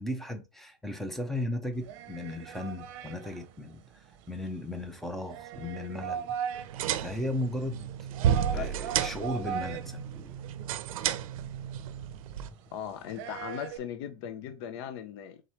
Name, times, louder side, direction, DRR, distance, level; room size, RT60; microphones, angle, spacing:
voice 1, 0.0-6.4 7.0-7.9 8.5-10.4, left 1 dB, ahead, 0.6 m, -36 dB
sound 1, 1.7-13.8, right 9 dB, 50° right, 0.8 m, -41 dB
sound 2, 6.5-12.5, right 9 dB, 85° right, 0.6 m, -32 dB
voice 2, 12.7-15.4, left 9 dB, 50° left, 0.6 m, -38 dB
3.8 x 3.1 x 4.2 m
supercardioid pair, 160°, 18 cm